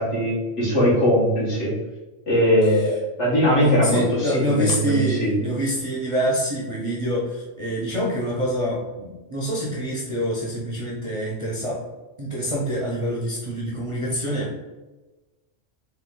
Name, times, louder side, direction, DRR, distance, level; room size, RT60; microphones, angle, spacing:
voice 1, 0.0-1.7 2.3-5.4, equal, 65° left, -7 dB, 1.9 m, -20 dB
voice 2, 3.8-11.8 12.2-14.6, equal, 30° right, -5 dB, 0.7 m, -26 dB
3.8 x 2.7 x 3.7 m, 1.2 s
omnidirectional pair, 1.3 m